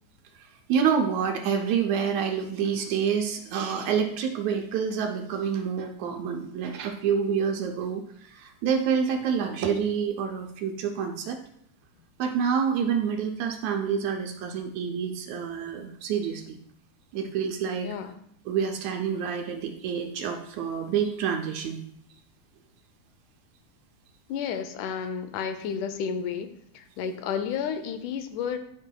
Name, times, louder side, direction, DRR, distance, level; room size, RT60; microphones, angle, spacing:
voice 1, 0.7-11.4 12.2-16.6 17.1-17.9 18.5-21.8, right 7 dB, 75° right, 3 dB, 1.8 m, -27 dB
voice 2, 17.8-18.1 24.3-26.5 26.7-28.6, left 7 dB, 80° left, 9 dB, 2.1 m, -31 dB
11.5 x 5.3 x 2.2 m, 0.69 s
omnidirectional pair, 3.6 m